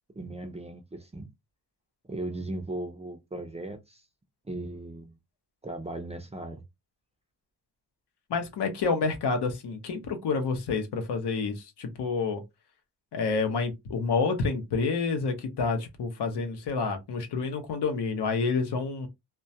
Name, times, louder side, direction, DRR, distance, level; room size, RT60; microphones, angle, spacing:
voice 1, 0.2-1.3 2.1-4.1 4.4-5.2 5.6-6.6, right 2 dB, 20° right, 0.3 m, -37 dB
voice 2, 8.3-12.4 13.1-19.1, left 4 dB, 85° left, 0.7 m, -28 dB
2.2 x 2.1 x 2.6 m
wide cardioid pair, 145°, 40 cm